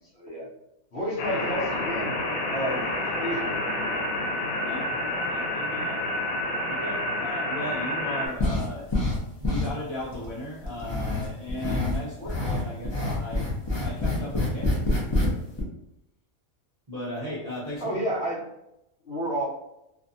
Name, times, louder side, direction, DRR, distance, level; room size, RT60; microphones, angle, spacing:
voice 1, 0.1-0.5 0.9-2.9 3.2-3.6 4.0-4.4 7.1-7.2 17.8-18.5 19.0-19.4, right 1 dB, 55° left, -5 dB, 1.0 m, -31 dB
sound 1, 1.2-8.3, left 1 dB, 90° left, 1.1 m, -29 dB
voice 2, 5.3-6.0 6.7-8.9 9.4-13.5 13.8-14.8 16.9-18.0, left 1 dB, 40° right, -10 dB, 0.5 m, -36 dB
sound 2, 8.4-9.2 9.4-10.3 10.6-12.0 12.3-15.3 15.6-15.7, left 2 dB, 40° left, 0.4 m, -26 dB
2.6 x 2.2 x 2.6 m, 0.85 s
omnidirectional pair, 1.5 m